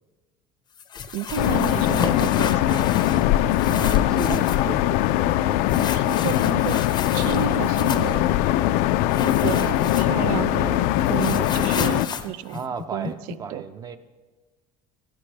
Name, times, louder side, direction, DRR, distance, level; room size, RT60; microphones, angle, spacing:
sound 1, 0.8-3.2 3.5-4.7 5.7-8.2 9.1-10.4 10.7-13.4, left 7 dB, 30° left, 0.6 m, -33 dB
voice 1, 1.1-2.9 5.7-6.8 7.1-8.2 9.2-10.8 11.1-12.6 12.9-13.6, right 12 dB, 70° right, 14 dB, 0.6 m, -31 dB
sound 2, 1.4-12.1, left 13 dB, 80° left, 0.5 m, -21 dB
voice 2, 3.7-4.9 12.5-14.0, right 5 dB, 25° right, 10 dB, 0.6 m, -33 dB
17.5 x 15.0 x 3.4 m, 1.3 s
cardioid pair, 170°, 15 cm